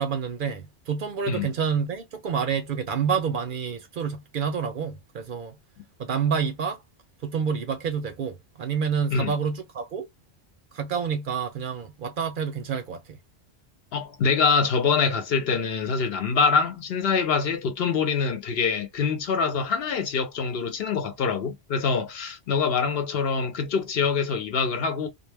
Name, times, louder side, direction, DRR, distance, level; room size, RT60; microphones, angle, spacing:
voice 1, 0.0-5.6 6.0-6.8 7.2-10.1 10.7-13.2, right 6 dB, 60° right, 0.6 m, -28 dB
voice 2, 13.9-25.1, left 5 dB, 65° left, 0.9 m, -25 dB
2.2 x 2.1 x 3.2 m
omnidirectional pair, 1.1 m